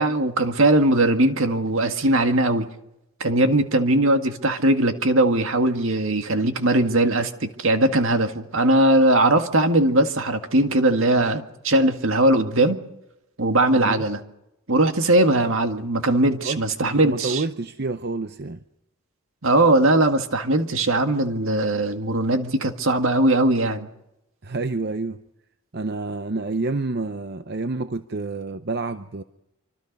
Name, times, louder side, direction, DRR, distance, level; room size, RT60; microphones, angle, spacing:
voice 1, 0.0-2.7 3.2-12.8 13.4-14.2 14.7-17.4 19.4-23.9, right 1 dB, 65° right, 2.0 m, -20 dB
voice 2, 13.7-14.0 16.4-16.6 17.0-18.6 24.4-25.2 25.7-29.2, right 3 dB, 50° right, 0.7 m, -28 dB
26.0 x 25.0 x 5.4 m
head